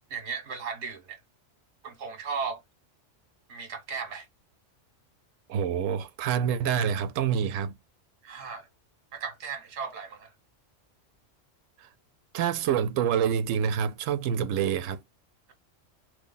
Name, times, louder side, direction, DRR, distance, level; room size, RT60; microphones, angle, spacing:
voice 1, 0.1-1.2 1.8-2.6 3.5-4.3 8.2-8.7 9.1-10.3, right 5 dB, 65° right, 1.3 m, -36 dB
voice 2, 5.5-7.8 11.8-11.9 12.3-15.0, right 8 dB, 85° right, 0.9 m, -27 dB
3.1 x 2.3 x 3.9 m
omnidirectional pair, 1.3 m